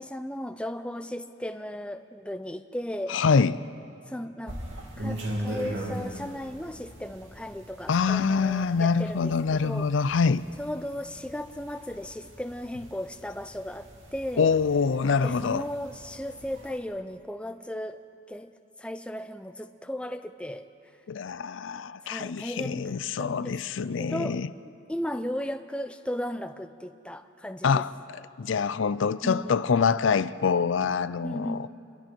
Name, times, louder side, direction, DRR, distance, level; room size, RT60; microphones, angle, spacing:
voice 1, 0.0-3.2 4.1-4.6 5.0-9.9 10.6-14.5 15.2-18.0 18.3-18.5 18.8-20.7 22.0-23.6 24.0-27.8 29.2-29.6 31.2-31.7, left 1 dB, 5° left, 0.5 m, -36 dB
voice 2, 3.1-3.7 7.9-10.4 14.4-15.6 21.1-24.5 27.6-27.9 28.4-31.7, left 5 dB, 70° left, 0.4 m, -25 dB
sound 1, 4.5-16.8, right 1 dB, 70° right, 3.0 m, -40 dB
28.5 x 22.5 x 4.5 m
head